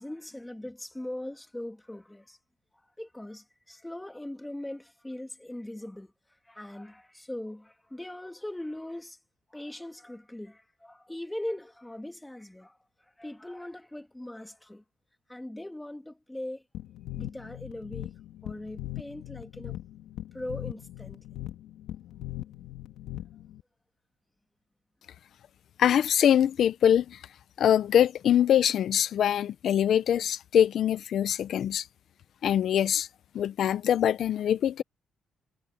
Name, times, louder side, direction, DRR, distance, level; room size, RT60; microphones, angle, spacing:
voice 1, 0.0-2.4 3.0-6.1 6.4-9.2 9.5-12.8 13.2-14.8 15.3-16.6 17.2-18.1 18.4-19.8 20.3-21.2, left 1 dB, 10° left, 3.1 m, -40 dB
sound 1, 16.7-23.6, left 14 dB, 85° left, 3.4 m, -40 dB
voice 2, 25.8-27.2 27.6-31.9 32.4-33.1 33.3-34.8, left 10 dB, 65° left, 0.9 m, -23 dB
cardioid pair, 90°, 0 cm